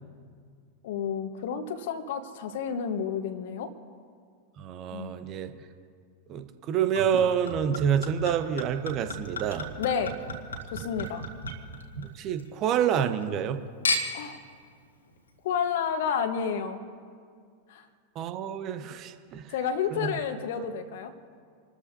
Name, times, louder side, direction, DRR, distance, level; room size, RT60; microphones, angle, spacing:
voice 1, 0.8-3.7 4.9-5.1 9.8-10.2 10.7-11.2 14.1-14.4 15.4-16.8 17.7-17.9 19.5-21.1, left 7 dB, 55° left, 8 dB, 1.5 m, -30 dB
voice 2, 4.6-5.5 6.3-9.7 12.0-13.6 18.1-19.4 19.9-20.1, right 8 dB, 35° right, 9 dB, 1.1 m, -28 dB
Chink clink / Liquid, 7.0-12.5 12.8-13.5 13.8-14.4 15.1-15.2, left 2 dB, 75° left, 2.1 m, -35 dB
28.5 x 13.5 x 2.9 m, 2.1 s
figure-of-eight pair, 90°, 0 cm